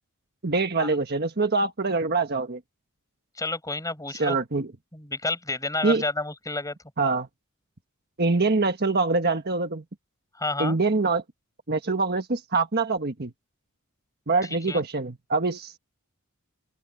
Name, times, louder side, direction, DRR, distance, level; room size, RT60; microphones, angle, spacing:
voice 1, 0.4-2.6 4.2-4.7 5.8-6.0 7.0-7.3 8.2-9.8 10.6-11.2 11.7-13.3 14.3-15.8, right 3 dB, 45° right, 1.4 m, -24 dB
voice 2, 3.4-4.4 4.9-6.8 10.4-10.8 14.7-14.8, left 2 dB, 15° left, 7.5 m, -30 dB
open air
head